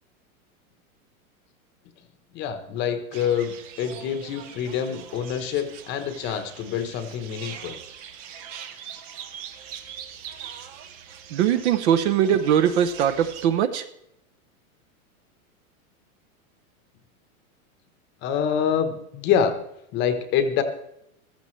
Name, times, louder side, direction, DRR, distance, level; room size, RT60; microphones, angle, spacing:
voice 1, 2.3-7.8 18.2-19.6 19.9-20.6, left 8 dB, 25° left, 9 dB, 1.0 m, -26 dB
Yuen Po St Bird Garden-Hong Kong, 3.1-13.5, right 8 dB, 20° right, 0.5 m, -42 dB
voice 2, 11.3-13.9, right 9 dB, 50° right, 11 dB, 0.8 m, -21 dB
15.0 x 13.5 x 3.2 m, 0.78 s
supercardioid pair, 160°, 43 cm